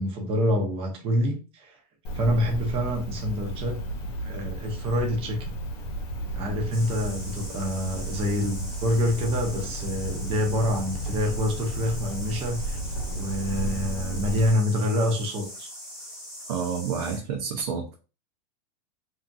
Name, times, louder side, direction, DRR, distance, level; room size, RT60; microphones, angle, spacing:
voice 1, 0.0-1.8 2.1-3.8 4.2-5.6 6.3-12.8 13.2-15.7, left 1 dB, 25° right, 2 dB, 0.7 m, -27 dB
Cricket, 2.0-14.5, right 1 dB, 90° left, 1.0 m, -33 dB
sound 1, 6.7-17.2, equal, ahead, 1.0 m, -42 dB
voice 2, 16.5-17.9, right 6 dB, 70° right, 0 dB, 0.7 m, -29 dB
2.8 x 2.5 x 2.6 m, 0.34 s
supercardioid pair, 160°, 20 cm